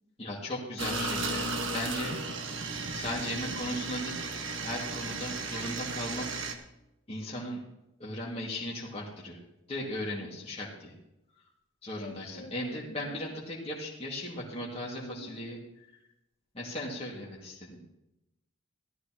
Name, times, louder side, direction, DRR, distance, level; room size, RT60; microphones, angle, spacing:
voice 1, 0.2-2.2 2.9-4.3 4.5-6.4 7.1-7.6 8.0-9.4 9.7-10.9 11.8-15.6 16.5-17.8, left 1 dB, 30° left, -5 dB, 2.2 m, -37 dB
sound 1, 0.8-6.5, right 3 dB, 60° right, 1.4 m, -35 dB
voice 2, 11.9-13.4 15.0-15.4, left 1 dB, 80° left, 4 dB, 1.7 m, -47 dB
15.0 x 13.5 x 3.0 m, 0.88 s
head